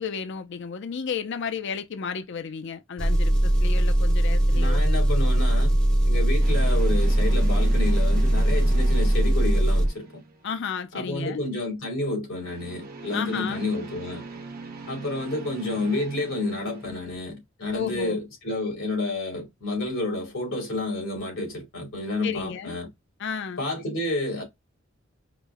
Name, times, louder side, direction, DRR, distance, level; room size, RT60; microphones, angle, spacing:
voice 1, 0.0-4.8 10.4-11.4 13.1-13.6 17.7-18.2 22.2-22.8 23.2-23.6, left 6 dB, 60° left, 0.4 m, -32 dB
Engine, 3.0-9.9, right 1 dB, 5° left, 0.7 m, -20 dB
voice 2, 4.5-5.8 6.1-10.1 10.9-14.2 14.9-22.9 23.6-24.4, left 2 dB, 80° left, 2.6 m, -30 dB
sound 1, 6.4-10.9 12.4-17.2, right 3 dB, 45° right, 1.0 m, -41 dB
4.9 x 2.1 x 3.4 m
head